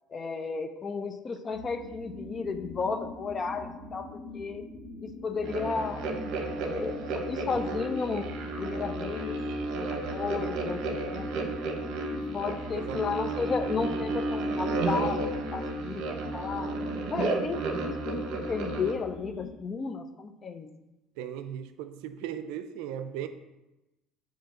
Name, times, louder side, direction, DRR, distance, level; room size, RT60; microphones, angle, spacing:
voice 1, 0.1-4.6 5.0-6.1 6.4-9.4 9.7-11.3 12.3-16.8 17.1-20.7, left 4 dB, 30° left, 9 dB, 0.5 m, -33 dB
sound 1, 1.5-19.5, left 1 dB, 30° right, 1.7 m, -44 dB
sound 2, 5.4-18.9, right 2 dB, 65° right, 0.9 m, -32 dB
voice 2, 12.7-13.0 21.2-23.3, right 10 dB, 85° right, 10 dB, 0.4 m, -37 dB
7.4 x 2.8 x 5.8 m, 1.0 s
cardioid pair, 135°, 0 cm